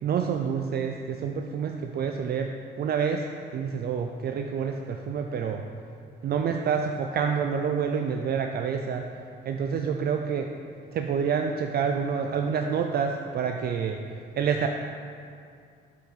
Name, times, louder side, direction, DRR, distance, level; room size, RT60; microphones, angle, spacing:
voice 1, 0.0-3.3 3.5-5.6 6.2-9.1 9.4-10.5 10.9-14.0 14.3-14.7, right 6 dB, 55° right, 4 dB, 0.4 m, -28 dB
8.2 x 4.2 x 4.0 m, 2.3 s
cardioid pair, 90°, 20 cm